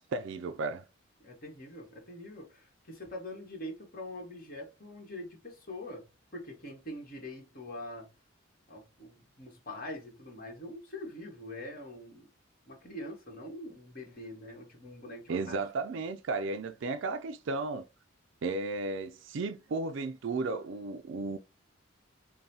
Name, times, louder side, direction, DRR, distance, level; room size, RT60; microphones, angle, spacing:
voice 1, 0.1-0.8 15.3-17.9 18.4-21.4, right 3 dB, 65° right, 0.4 m, -34 dB
voice 2, 1.2-6.1 6.3-8.1 8.7-12.3 12.7-15.6, left 1 dB, 45° left, 1.5 m, -44 dB
5.3 x 2.2 x 2.7 m
head